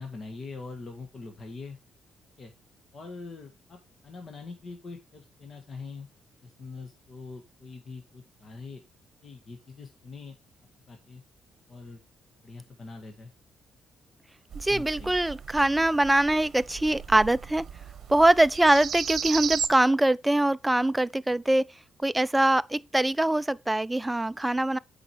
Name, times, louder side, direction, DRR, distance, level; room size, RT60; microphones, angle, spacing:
voice 1, 0.0-1.8 2.4-2.5 2.9-6.1 6.4-8.8 9.2-10.3 10.9-11.2 11.7-12.0 12.4-13.3 14.7-15.1, left 4 dB, 45° left, 1.7 m, -43 dB
voice 2, 14.5-17.6 18.1-21.7 22.0-24.8, right 1 dB, 10° right, 0.4 m, -23 dB
sound 1, 14.5-19.7, right 7 dB, 55° right, 0.9 m, -35 dB
8.0 x 5.0 x 4.5 m
cardioid pair, 90°, 0 cm